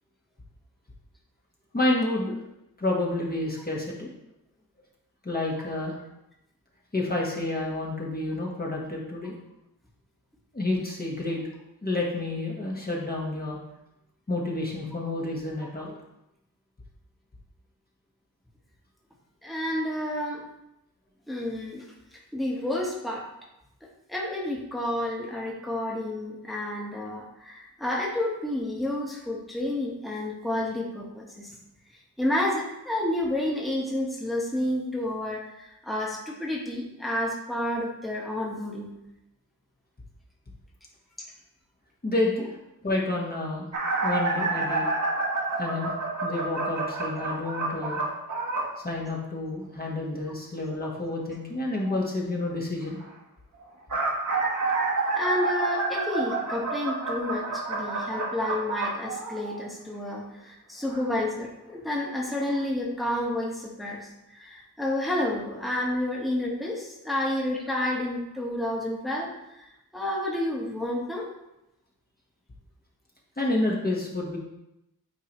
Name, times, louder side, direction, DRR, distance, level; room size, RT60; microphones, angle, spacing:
voice 1, 1.7-2.4 2.8-4.1 5.2-6.0 6.9-9.3 10.5-11.4 11.8-13.6 14.3-16.0 42.0-42.6 42.8-43.7 44.0-44.9 45.6-45.9 46.2-48.0 48.8-53.0 73.4-74.4, left 2 dB, 25° left, -4 dB, 1.3 m, -29 dB
voice 2, 19.4-20.4 21.3-21.8 22.1-23.3 24.1-31.6 32.2-38.9 41.2-41.3 47.3-47.4 51.8-52.0 55.0-71.3, left 1 dB, ahead, -3 dB, 1.3 m, -30 dB
sound 1, 43.7-48.8 53.6-59.8 60.9-61.0 62.1-62.2 62.5-62.6, right 3 dB, 55° right, 1.2 m, -29 dB
9.1 x 3.8 x 3.0 m, 0.88 s
wide cardioid pair, 75°, 36 cm